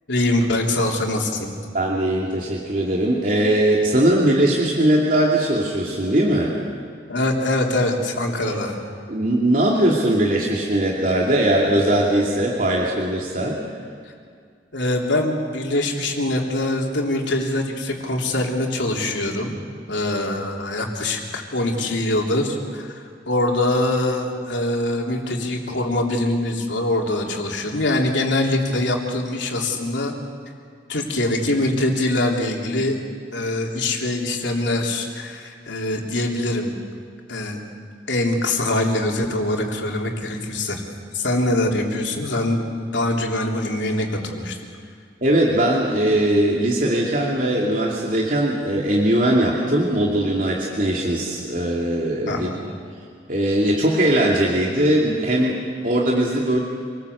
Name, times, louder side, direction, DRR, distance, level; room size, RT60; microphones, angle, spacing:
voice 1, 0.1-1.5 7.1-8.7 14.1-14.2 14.7-19.6 19.9-30.1 30.9-33.0 33.3-36.8 37.3-37.6 38.1-40.8 41.1-42.6 42.9-44.6 52.3-52.6, left 1 dB, 90° left, 0 dB, 3.5 m, -23 dB
voice 2, 1.7-6.6 8.4-8.6 9.1-13.6 45.2-52.5 53.3-56.6, right 1 dB, 45° right, -3 dB, 2.8 m, -20 dB
27.0 x 19.5 x 8.2 m, 2.2 s
head